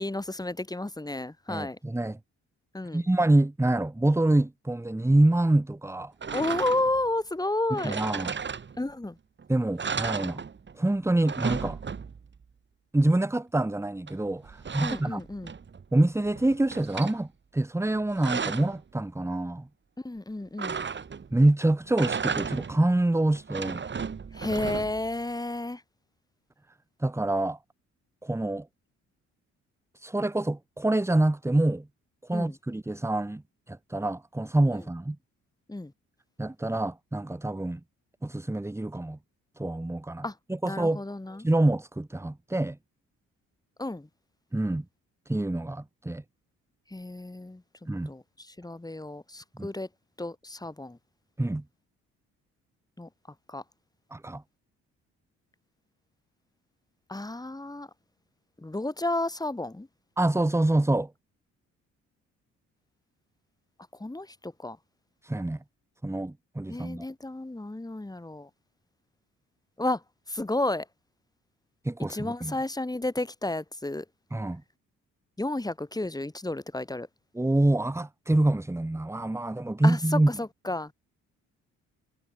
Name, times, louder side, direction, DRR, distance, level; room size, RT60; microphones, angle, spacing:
voice 1, 0.0-1.8 2.7-3.1 6.3-8.0 8.8-9.2 14.8-15.5 20.0-20.8 24.3-25.8 32.3-32.6 34.7-34.8 35.7-35.9 40.2-40.4 40.6-41.5 43.8-44.1 46.9-47.6 48.0-49.9 50.2-51.0 53.0-53.1 53.5-53.6 57.1-57.9 58.6-59.9 63.9-64.8 66.7-68.5 69.8-70.9 72.0-74.1 75.4-77.1 79.8-81.0, left 2 dB, 10° left, 6.3 m, -32 dB
voice 2, 1.5-2.2 2.9-6.1 7.8-8.3 9.5-10.4 10.7-11.8 12.9-15.2 15.9-19.7 21.3-23.8 27.0-27.6 28.2-28.7 30.0-31.9 32.3-33.4 33.7-35.2 36.4-37.8 38.2-39.2 39.6-40.2 40.5-41.0 41.4-42.8 44.5-44.9 45.3-46.2 47.9-48.1 49.6-49.7 51.4-51.6 54.1-54.4 60.2-61.1 65.2-65.6 66.0-67.1 71.8-72.5 74.3-74.6 77.4-80.3, right 1 dB, 10° right, 1.9 m, -26 dB
sound 1, 6.2-7.1 7.8-9.1 9.4-9.5 9.8-10.9 11.1-12.4 14.1-15.9 16.3-17.2 17.9-18.8 20.6-21.4 21.9-22.9 23.3-25.1, right 6 dB, 40° right, 3.3 m, -34 dB
cardioid pair, 90°, 30 cm